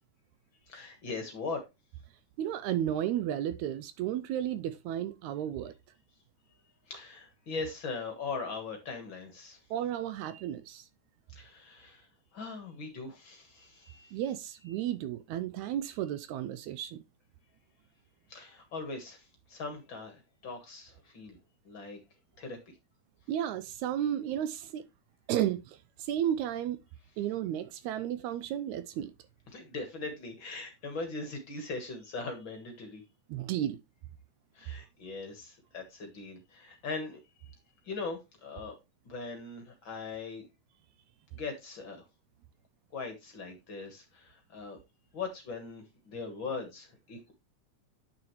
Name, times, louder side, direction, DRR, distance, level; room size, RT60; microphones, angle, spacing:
voice 1, 0.7-1.7 6.9-9.6 11.3-14.2 18.3-21.4 21.7-22.0 22.4-22.8 29.5-33.0 34.5-37.5 37.9-38.8 39.1-40.5 41.3-42.0 42.9-44.8 45.1-47.3, left 4 dB, 50° left, 1.8 m, -40 dB
voice 2, 2.4-5.7 9.7-10.9 14.1-17.0 23.3-24.8 25.3-26.8 27.2-29.1 33.3-33.8, right 11 dB, 80° right, 1.8 m, -33 dB
8.9 x 6.0 x 3.1 m
omnidirectional pair, 3.5 m